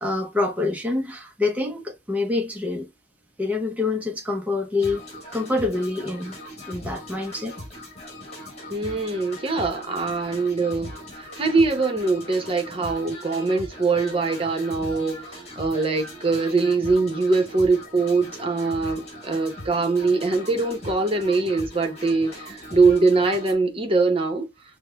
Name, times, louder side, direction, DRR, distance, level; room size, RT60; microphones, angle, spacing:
voice 1, 0.0-2.9 3.4-5.0 5.3-6.4 6.7-7.6, left 3 dB, 10° right, 0.6 m, -26 dB
sound 1, 4.8-23.5, left 1 dB, 35° left, 1.5 m, -40 dB
voice 2, 8.7-24.5, right 3 dB, 30° right, 0.9 m, -23 dB
6.4 x 2.2 x 2.3 m
head